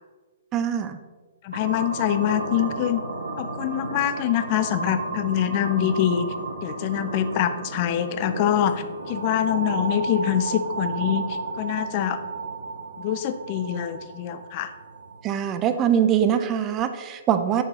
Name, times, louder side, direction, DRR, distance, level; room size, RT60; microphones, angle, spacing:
voice 1, 0.5-1.0 15.2-17.6, right 9 dB, 25° right, 9 dB, 0.4 m, -23 dB
voice 2, 1.4-3.0 3.4-6.3 6.6-12.2 13.0-14.7, left 10 dB, 40° left, 10 dB, 0.4 m, -25 dB
sound 1, 1.5-15.5, right 3 dB, 75° right, 0.9 m, -33 dB
6.6 x 6.3 x 2.9 m, 1.4 s
figure-of-eight pair, 120°, 0 cm